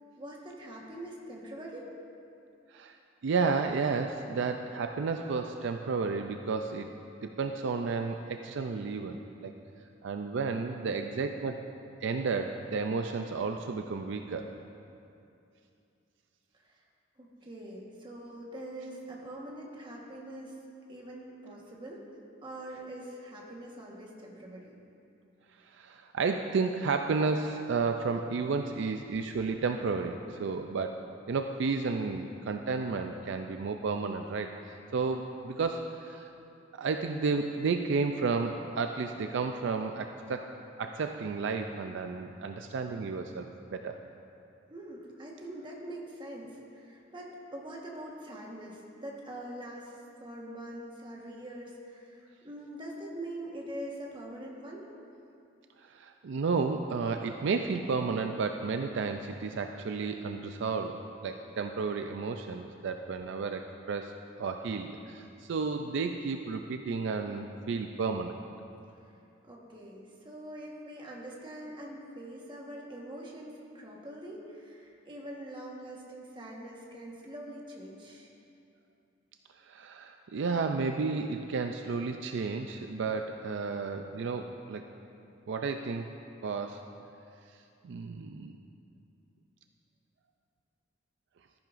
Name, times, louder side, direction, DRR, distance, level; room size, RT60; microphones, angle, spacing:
voice 1, 0.2-1.9 16.6-16.8 17.2-20.5 20.9-22.1 22.4-24.8 44.7-54.8 69.5-78.3, right 1 dB, 25° right, -2 dB, 1.3 m, -43 dB
voice 2, 3.2-6.9 7.2-9.5 10.0-11.6 12.0-14.5 25.7-31.0 31.3-36.3 36.8-40.5 40.8-44.0 55.8-64.1 64.4-68.3 79.7-84.8 85.5-86.1 86.4-86.8 87.8-88.5, right 4 dB, 65° right, 5 dB, 0.4 m, -32 dB
13.5 x 10.0 x 2.6 m, 2.7 s
head